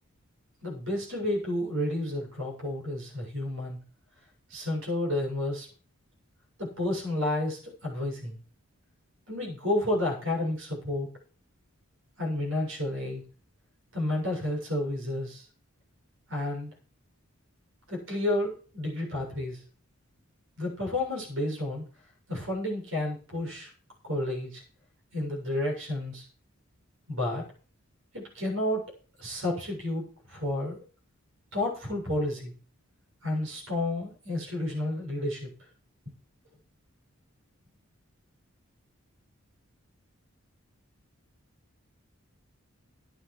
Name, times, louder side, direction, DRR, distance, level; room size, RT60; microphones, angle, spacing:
voice 1, 0.6-3.8 4.5-5.7 6.6-8.4 9.3-11.1 12.2-13.2 13.9-15.5 16.3-16.7 17.9-19.6 20.6-21.8 22.3-23.7 24.0-24.6 25.1-26.3 27.1-27.4 28.1-28.8 29.2-30.8 31.5-32.5 33.2-35.5, left 1 dB, 65° right, 0 dB, 7.4 m, -31 dB
12.5 x 9.4 x 4.9 m, 0.39 s
head